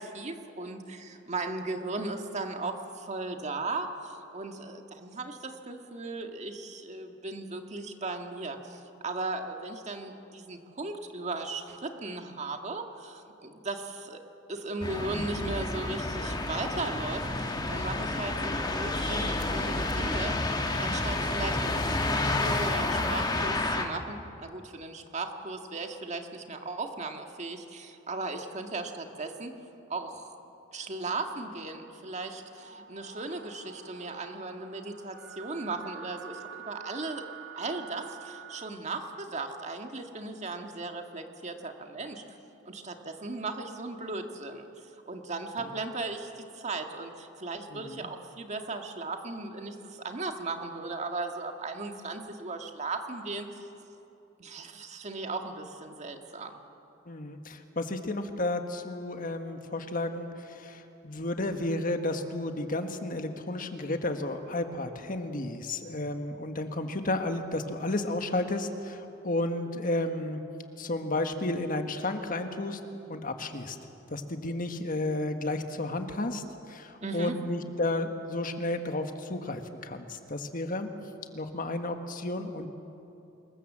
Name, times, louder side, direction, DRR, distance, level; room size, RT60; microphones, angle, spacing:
voice 1, 0.0-14.2 14.5-20.3 20.8-29.5 29.9-30.4 30.7-37.2 37.6-42.4 42.7-44.7 45.1-53.5 54.4-56.6 77.0-77.4, right 3 dB, 40° right, 4 dB, 1.8 m, -37 dB
sound 1, 14.8-23.8, left 2 dB, 20° left, 1.8 m, -30 dB
sound 2, 32.1-38.7, right 8 dB, 70° right, 2.1 m, -47 dB
voice 2, 47.7-48.1 57.1-70.4 70.8-72.8 73.1-73.8 74.1-80.9 81.3-82.7, left 2 dB, 45° left, 6 dB, 1.5 m, -32 dB
26.0 x 21.5 x 7.5 m, 2.8 s
head